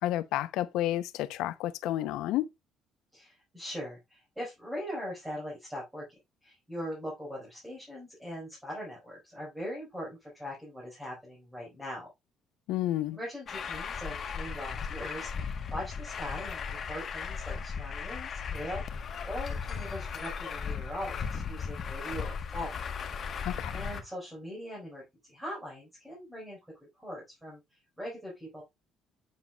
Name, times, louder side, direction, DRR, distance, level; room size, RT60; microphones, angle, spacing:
voice 1, 0.0-2.5 12.7-13.2 23.4-23.8, left 14 dB, 85° left, 0.6 m, -31 dB
voice 2, 3.1-6.0 6.4-12.1 13.1-22.8 23.7-26.6 27.0-27.6 28.0-28.6, equal, 5° right, 4.3 m, -41 dB
Truck, 13.5-24.0, left 6 dB, 40° left, 1.1 m, -36 dB
7.9 x 7.0 x 2.3 m
cardioid pair, 140°, 0 cm